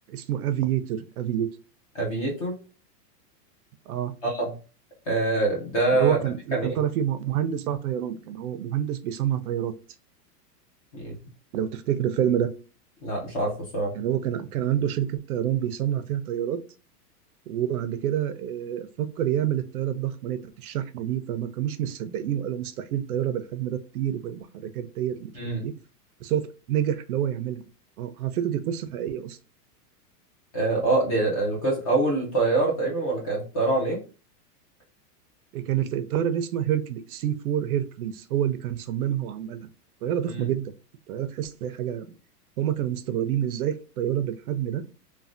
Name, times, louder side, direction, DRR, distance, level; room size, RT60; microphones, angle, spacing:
voice 1, 0.1-1.5 3.9-4.1 5.9-9.7 11.5-12.5 13.9-16.6 17.5-25.3 25.6-25.7 26.2-27.7 28.0-29.4 35.5-39.6 40.0-40.7 41.1-42.1 42.6-44.8, right 10 dB, 65° right, 10 dB, 0.5 m, -28 dB
voice 2, 1.9-2.6 4.2-4.5 5.1-6.2 6.5-6.8 10.9-11.2 13.0-14.0 25.3-25.7 30.5-34.0 40.3-40.5, right 2 dB, 25° left, -2 dB, 0.5 m, -25 dB
3.2 x 2.2 x 2.5 m, 0.35 s
supercardioid pair, 175°, 48 cm